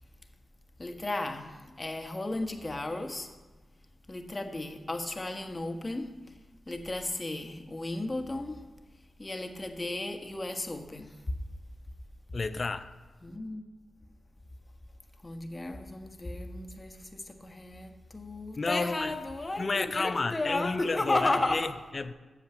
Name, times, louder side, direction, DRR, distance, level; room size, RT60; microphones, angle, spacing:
voice 1, 0.8-3.3 4.1-6.2 6.7-8.7 9.2-11.2 13.2-13.6 15.2-21.7, left 2 dB, 30° left, 1.3 m, -34 dB
voice 2, 12.3-12.9 18.6-19.1 19.6-22.1, left 3 dB, 50° left, 0.6 m, -31 dB
8.5 x 7.2 x 6.8 m
cardioid pair, 50°, 0 cm